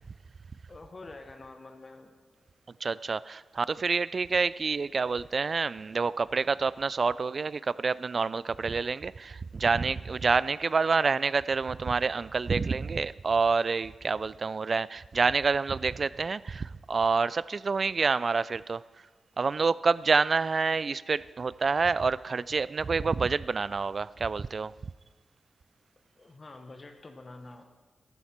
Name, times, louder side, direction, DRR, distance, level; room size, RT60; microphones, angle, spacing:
voice 1, 0.7-2.1 26.2-27.6, left 2 dB, 40° left, 1.2 m, -47 dB
voice 2, 2.8-18.8 19.4-24.7, right 4 dB, 50° right, 0.3 m, -28 dB
13.5 x 12.5 x 4.5 m
cardioid pair, 70°, 0 cm